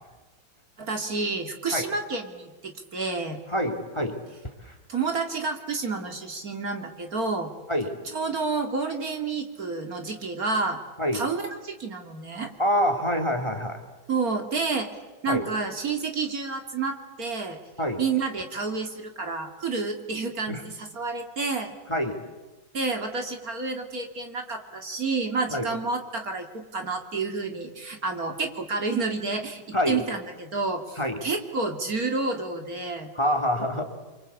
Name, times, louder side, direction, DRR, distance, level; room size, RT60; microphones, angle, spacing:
voice 1, 0.8-3.4 4.9-7.5 8.1-10.8 11.1-12.5 14.1-14.9 15.2-17.6 18.0-21.7 22.7-33.1, right 4 dB, 55° right, 5 dB, 2.8 m, -29 dB
voice 2, 3.5-4.2 4.6-4.7 7.7-8.0 11.0-11.2 12.6-13.8 15.3-15.4 17.8-18.0 20.5-20.6 21.9-22.2 25.5-25.7 29.7-30.0 31.0-31.2 33.1-33.8, equal, 15° left, 6 dB, 2.8 m, -26 dB
29.5 x 24.0 x 8.4 m, 1.2 s
omnidirectional pair, 1.9 m